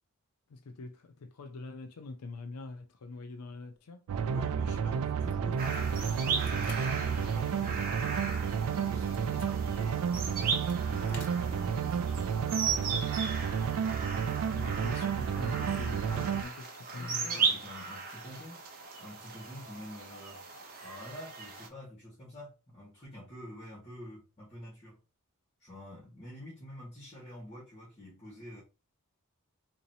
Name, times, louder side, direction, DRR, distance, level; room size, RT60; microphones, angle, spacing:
voice 1, 0.5-4.0 14.5-17.6, left 3 dB, 90° left, 0.5 m, -44 dB
sound 1, 4.1-16.4, right 7 dB, 70° right, 0.3 m, -31 dB
voice 2, 4.2-10.1 10.4-13.0 16.9-18.6 19.0-20.4 20.7-25.0 25.6-28.6, left 1 dB, 30° left, 1.7 m, -48 dB
sound 2, 5.2-6.8 7.1-7.2 7.7-9.5 10.3-12.2, left 4 dB, 75° left, 1.2 m, -52 dB
sound 3, 5.6-21.7, right 5 dB, 40° right, 0.7 m, -37 dB
4.0 x 2.7 x 2.7 m
head